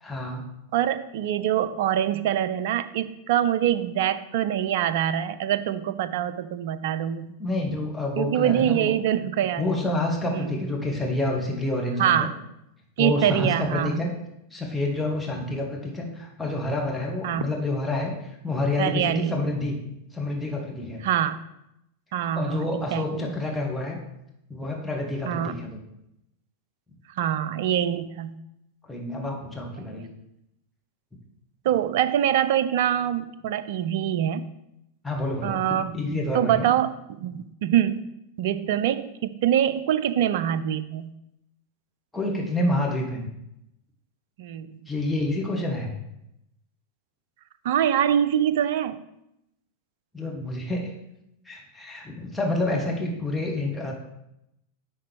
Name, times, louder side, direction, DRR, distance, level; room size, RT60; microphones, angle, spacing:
voice 1, 0.0-0.4 7.4-9.0 9.6-12.3 13.0-14.1 14.5-19.7 20.1-21.0 22.3-24.0 24.5-25.8 28.9-30.0 35.0-35.6 35.9-36.7 42.1-43.3 44.9-45.9 50.1-50.9 51.4-53.9, left 2 dB, 5° left, -2 dB, 1.4 m, -28 dB
voice 2, 0.7-7.3 8.2-9.7 10.3-10.6 12.0-12.4 13.0-14.0 17.2-17.5 18.8-19.4 21.0-21.4 22.1-23.3 25.3-25.6 27.2-28.4 29.8-30.1 31.6-34.5 35.4-36.0 36.3-38.0 38.4-41.1 44.4-44.9 47.6-49.0, right 10 dB, 50° right, 14 dB, 0.4 m, -24 dB
10.0 x 3.8 x 3.4 m, 0.83 s
figure-of-eight pair, 90°, 0 cm